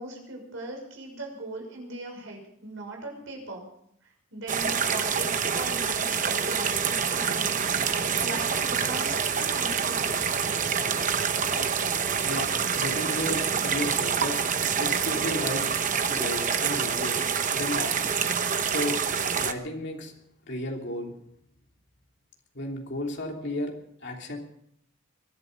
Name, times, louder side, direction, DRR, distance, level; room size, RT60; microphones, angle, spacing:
voice 1, 0.0-3.6 4.0-10.1, right 2 dB, 65° right, 0 dB, 6.1 m, -39 dB
sound 1, 4.5-19.5, right 6 dB, 35° right, 0.9 m, -27 dB
voice 2, 12.7-14.4 14.8-15.6 16.1-18.1 18.6-19.0 19.3-20.1 20.4-21.1 22.5-23.7 24.0-24.4, left 1 dB, 55° left, 0 dB, 3.1 m, -33 dB
22.5 x 11.5 x 5.4 m, 0.71 s
head